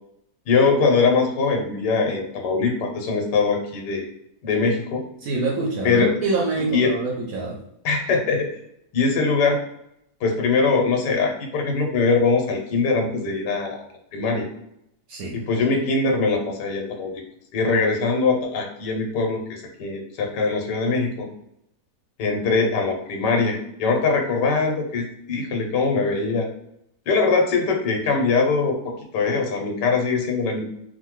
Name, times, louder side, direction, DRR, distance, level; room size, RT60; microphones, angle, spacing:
voice 1, 0.5-4.1 4.4-5.0 5.8-6.2 6.7-6.9 7.8-8.5 8.9-9.6 10.2-13.8 14.1-14.5 15.3-17.1 17.5-21.3 22.2-26.5 27.1-30.6, left 4 dB, 80° left, 2 dB, 1.3 m, -22 dB
voice 2, 5.2-7.6 15.1-15.4, right 3 dB, 70° right, -1 dB, 0.9 m, -25 dB
3.0 x 2.1 x 2.9 m, 0.76 s
omnidirectional pair, 1.8 m